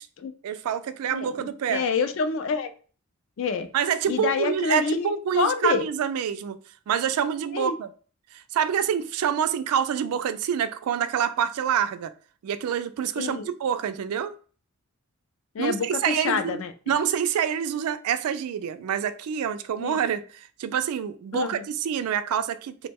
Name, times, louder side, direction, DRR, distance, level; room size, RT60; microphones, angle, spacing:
voice 1, 0.4-1.8 3.7-6.6 6.9-7.9 8.3-12.1 12.4-14.3 15.6-16.6 16.9-22.9, right 8 dB, 85° right, 0.3 m, -27 dB
voice 2, 1.1-2.7 3.4-3.7 4.1-5.9 7.5-7.7 13.2-13.5 15.5-16.7 19.8-20.0 21.3-21.5, left 5 dB, 60° left, 0.3 m, -27 dB
3.0 x 2.1 x 3.4 m
head